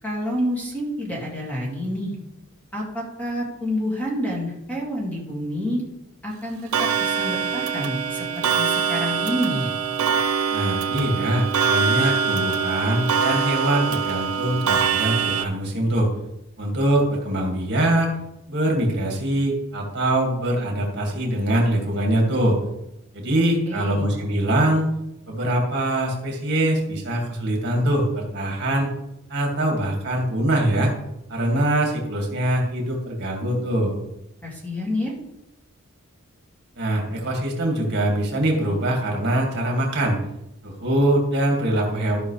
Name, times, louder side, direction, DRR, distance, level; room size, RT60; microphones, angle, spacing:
voice 1, 0.0-2.2 2.7-5.8 6.2-9.7 23.7-24.1 34.4-35.1, equal, 10° left, -3 dB, 2.2 m, -28 dB
Clock, 6.7-15.5, right 6 dB, 85° right, 0.8 m, -23 dB
voice 2, 10.5-16.1 16.6-18.1 18.5-22.6 23.1-24.9 25.3-28.9 29.3-30.9 31.3-33.9 36.8-40.2 40.6-42.2, right 1 dB, 55° right, 0 dB, 2.2 m, -23 dB
14.5 x 5.6 x 3.3 m, 0.87 s
head